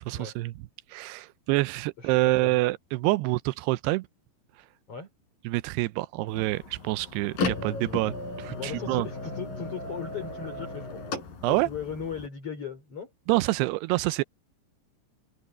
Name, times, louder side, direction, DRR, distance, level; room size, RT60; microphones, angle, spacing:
voice 1, 0.1-0.5 0.9-4.1 5.5-9.1 11.4-11.7 13.3-14.2, right 19 dB, 85° right, 2.6 m, -27 dB
voice 2, 2.0-2.5 4.9-5.1 8.6-11.0 11.4-13.1, left 6 dB, 35° left, 5.2 m, -38 dB
sound 1, 6.3-12.3, left 3 dB, 55° left, 5.5 m, -35 dB
omnidirectional pair, 4.8 m